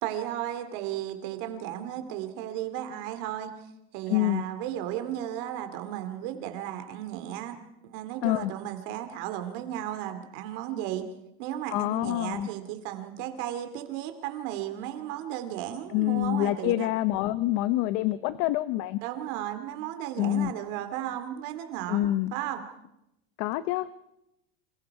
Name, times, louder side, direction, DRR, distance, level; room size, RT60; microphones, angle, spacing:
voice 1, 0.0-3.5 3.9-7.6 7.8-11.1 11.4-16.9 19.0-22.0 22.3-22.6, right 11 dB, 55° right, 8 dB, 2.6 m, -34 dB
voice 2, 4.1-4.4 8.2-8.5 11.7-12.5 15.9-19.0 20.2-20.5 21.9-22.4 23.4-23.9, left 15 dB, 50° left, 14 dB, 0.8 m, -26 dB
28.0 x 27.5 x 4.8 m, 0.89 s
supercardioid pair, 160°, 31 cm